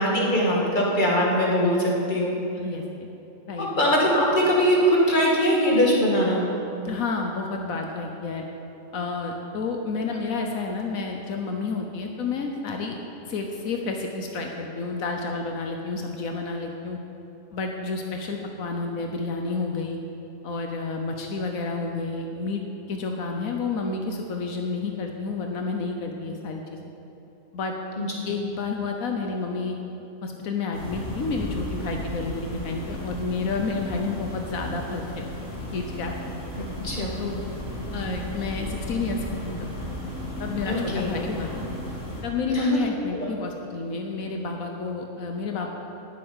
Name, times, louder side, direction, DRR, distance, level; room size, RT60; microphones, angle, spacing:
voice 1, 0.0-2.4 3.6-6.4 28.0-28.1 36.8-37.2 40.6-41.1 42.5-42.8 43.2-43.3, equal, 35° left, -3 dB, 2.4 m, -22 dB
voice 2, 6.8-8.4 8.9-13.0 13.3-17.0 17.5-20.0 20.4-22.6 22.9-26.8 27.5-27.7 28.2-29.8 30.2-35.3 35.7-36.1 37.2-37.4 37.9-39.7 40.4-41.7 42.2-45.7, left 4 dB, 80° left, 2 dB, 1.4 m, -30 dB
sound 1, 30.7-42.2, left 1 dB, 65° left, 4.3 m, -34 dB
11.5 x 7.8 x 9.6 m, 2.9 s
omnidirectional pair, 1.4 m